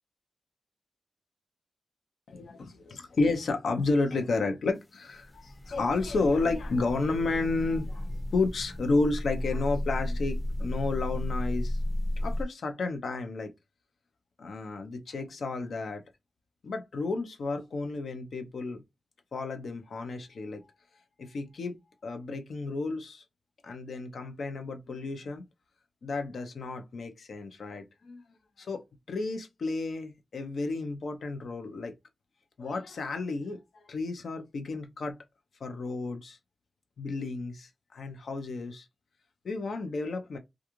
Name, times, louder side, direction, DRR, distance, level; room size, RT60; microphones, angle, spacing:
voice 1, 2.3-11.8 12.2-13.5 14.4-16.0 16.6-18.8 19.3-20.6 21.2-21.8 22.0-23.2 23.6-25.4 26.0-28.2 28.6-28.8 29.1-31.9 32.6-35.2 35.6-36.4 37.0-38.9 39.4-40.4, left 3 dB, 80° left, 0.6 m, -32 dB
sound 1, 5.1-12.4, left 1 dB, 10° left, 0.5 m, -34 dB
2.4 x 2.3 x 2.9 m
cardioid pair, 50°, 0 cm